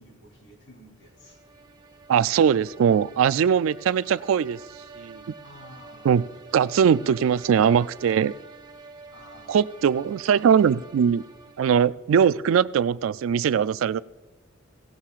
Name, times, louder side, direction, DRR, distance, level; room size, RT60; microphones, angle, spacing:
voice 1, 0.0-1.4 5.4-6.3 9.1-9.8, left 1 dB, 65° left, 0 dB, 3.4 m, -50 dB
sound 1, 1.1-12.1, right 4 dB, 20° right, 0.7 m, -48 dB
voice 2, 2.1-4.6 5.0-5.2 6.0-6.2 6.5-8.3 9.5-11.2 11.6-14.0, right 7 dB, 80° right, 18 dB, 0.3 m, -21 dB
17.5 x 17.0 x 2.4 m, 1.2 s
head